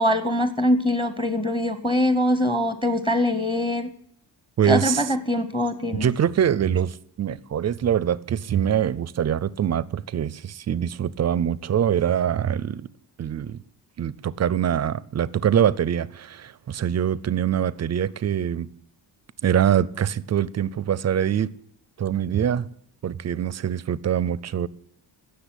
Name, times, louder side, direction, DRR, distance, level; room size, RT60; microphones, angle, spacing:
voice 1, 0.0-3.9 4.6-6.1, left 1 dB, 15° left, 0.8 m, -23 dB
voice 2, 4.6-5.0 5.9-12.9 13.2-13.6 14.0-18.7 19.4-21.5 22.0-22.7 23.0-24.7, right 9 dB, 40° right, 0.5 m, -24 dB
17.0 x 6.8 x 10.0 m
wide cardioid pair, 180°, 43 cm